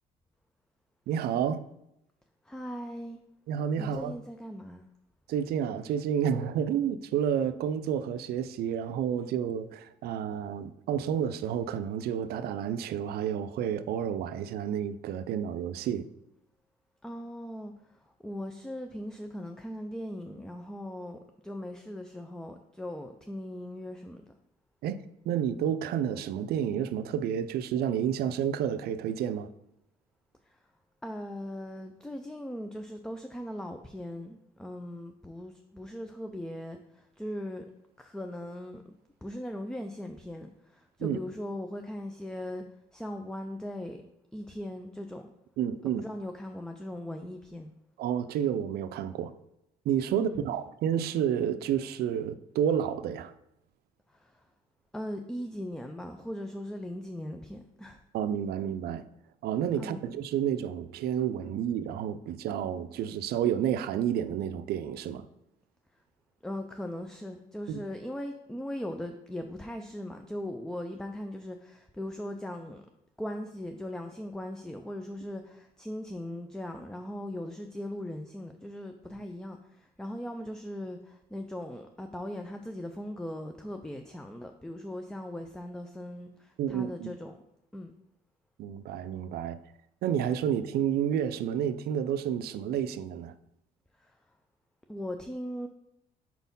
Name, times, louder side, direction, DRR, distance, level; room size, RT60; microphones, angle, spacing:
voice 1, 1.1-1.6 3.5-4.1 5.3-16.0 24.8-29.5 41.0-41.2 45.6-46.0 48.0-49.3 49.9-53.3 58.1-59.0 59.4-65.2 67.7-67.8 86.6-87.2 88.6-89.6 90.0-93.3, right 9 dB, 70° right, 0.5 m, -30 dB
voice 2, 2.4-3.2 3.8-4.9 17.0-24.2 30.4-30.6 31.0-37.7 38.0-38.9 39.2-42.6 42.9-44.0 44.3-45.2 46.0-47.7 50.1-50.4 54.1-54.4 54.9-58.0 59.8-60.0 66.4-72.8 73.2-87.4 87.7-87.9 94.0-94.2 94.9-95.7, left 1 dB, 5° left, 0.4 m, -39 dB
4.5 x 4.2 x 5.3 m
cardioid pair, 110°, 17 cm